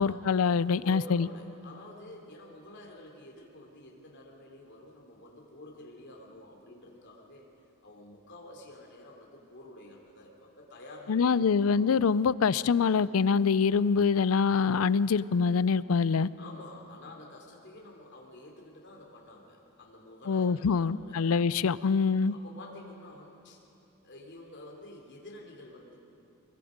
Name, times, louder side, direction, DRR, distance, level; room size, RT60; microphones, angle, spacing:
voice 1, 0.0-1.3 11.1-16.3 20.3-22.3, left 5 dB, 70° left, 18 dB, 0.4 m, -25 dB
voice 2, 0.8-7.5 7.8-11.9 16.4-21.2 21.8-23.7 24.0-26.0, left 1 dB, 55° left, 0 dB, 3.2 m, -49 dB
24.5 x 22.0 x 5.2 m, 2.7 s
head